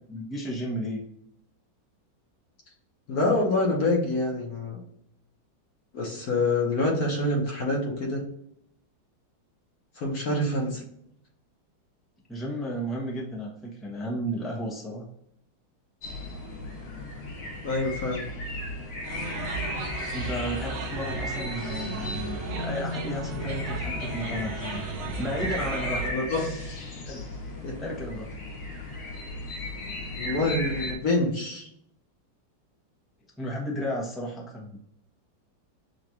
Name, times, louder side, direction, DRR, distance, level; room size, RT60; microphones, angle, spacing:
voice 1, 0.1-1.0 12.3-15.0 20.1-24.8 25.2-26.1 27.1-27.3 27.8-28.3 33.4-34.8, equal, ahead, -3 dB, 0.5 m, -33 dB
voice 2, 3.1-4.8 5.9-8.2 10.0-10.8 17.6-18.2 26.0-26.5 27.6-27.7 30.1-31.7, left 2 dB, 55° left, -1 dB, 1.4 m, -26 dB
sound 1, 16.0-30.9, left 1 dB, 85° left, 1.8 m, -36 dB
sound 2, 19.0-26.1, right 3 dB, 75° right, 0.6 m, -35 dB
7.0 x 2.5 x 2.9 m, 0.74 s
omnidirectional pair, 2.1 m